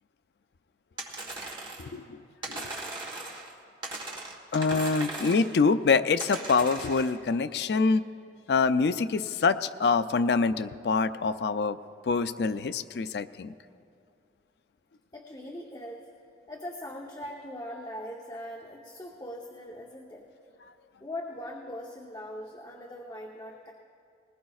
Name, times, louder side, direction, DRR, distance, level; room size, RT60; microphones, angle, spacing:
sound 1, 1.0-1.9 2.4-3.5 3.8-5.6 6.2-7.1, right 2 dB, 25° right, 1.3 m, -38 dB
voice 1, 1.8-2.2 2.5-2.7 4.5-8.0 8.5-11.8 12.0-13.5, left 4 dB, 65° left, 12 dB, 0.4 m, -25 dB
voice 2, 15.1-16.1 16.5-20.3 21.0-23.7, left 1 dB, 20° left, -1 dB, 0.8 m, -41 dB
20.5 x 19.5 x 2.4 m, 2.4 s
head